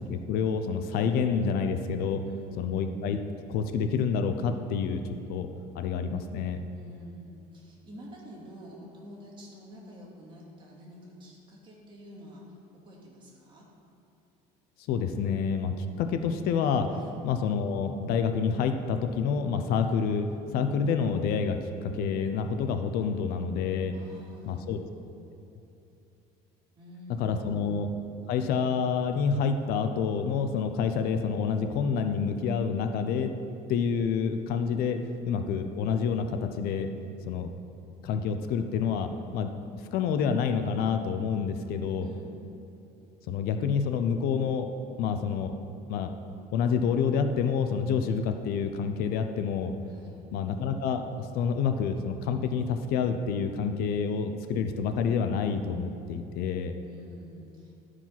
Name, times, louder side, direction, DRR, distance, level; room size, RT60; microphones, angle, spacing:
voice 1, 0.1-2.2 2.6-3.2 3.5-5.0 5.3-5.5 5.7-6.7 14.9-16.9 17.2-20.3 20.5-23.9 24.5-24.8 27.2-27.9 28.3-33.3 33.7-36.9 37.3-37.5 38.0-39.5 39.9-42.1 43.3-44.7 45.0-45.6 45.9-46.1 46.5-49.7 50.3-56.7, left 6 dB, 70° left, 7 dB, 0.7 m, -28 dB
voice 2, 2.2-2.7 6.7-13.6 16.9-17.1 23.9-24.8 26.8-27.6 42.0-42.4 49.9-50.2 56.8-57.8, equal, 30° right, -4 dB, 2.5 m, -48 dB
12.5 x 4.9 x 5.8 m, 2.8 s
cardioid pair, 130°, 17 cm